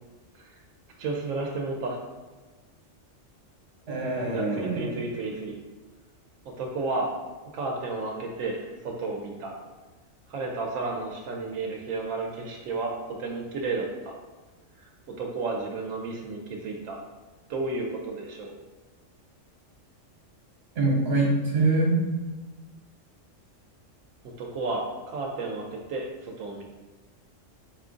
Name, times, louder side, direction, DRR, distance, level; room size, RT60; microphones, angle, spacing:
voice 1, 1.0-2.0 4.3-5.6 6.6-7.1 7.5-9.5 10.3-12.9 13.2-14.2 14.7-14.9 15.2-17.0 17.5-18.5 24.4-26.6, right 3 dB, 90° right, 0 dB, 1.0 m, -32 dB
voice 2, 3.9-4.9 20.7-22.0, right 2 dB, 55° right, -3 dB, 1.3 m, -24 dB
4.3 x 2.4 x 3.7 m, 1.2 s
omnidirectional pair, 1.3 m